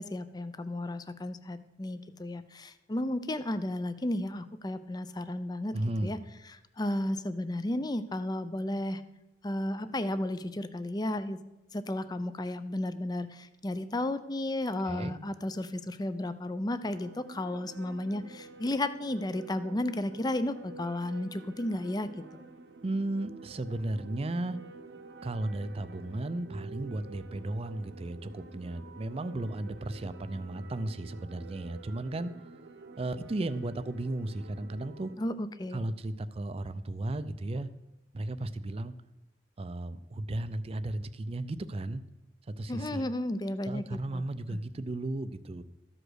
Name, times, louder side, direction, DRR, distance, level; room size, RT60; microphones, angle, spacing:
voice 1, 0.0-5.8 6.0-6.2 6.5-9.0 9.4-11.4 11.7-22.4 35.2-35.8 42.7-44.2 44.5-44.6, left 1 dB, 25° left, 12 dB, 0.5 m, -33 dB
voice 2, 5.7-6.1 14.9-15.2 22.8-24.6 25.2-32.3 33.0-35.1 35.7-37.7 38.1-38.9 39.6-42.0 42.5-43.1 43.7-45.6, right 2 dB, 35° right, 12 dB, 0.4 m, -35 dB
sound 1, 16.8-35.2, right 3 dB, 80° right, 0.9 m, -49 dB
13.5 x 5.0 x 6.3 m, 0.94 s
head